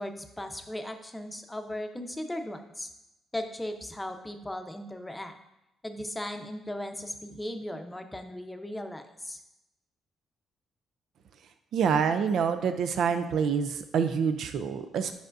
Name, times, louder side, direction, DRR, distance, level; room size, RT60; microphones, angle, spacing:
voice 1, 0.0-2.9 3.3-5.3 5.8-9.4, left 1 dB, 10° left, 6 dB, 0.7 m, -37 dB
voice 2, 11.7-15.1, right 6 dB, 70° right, 9 dB, 0.4 m, -26 dB
10.5 x 4.8 x 2.6 m, 0.89 s
cardioid pair, 90°, 0 cm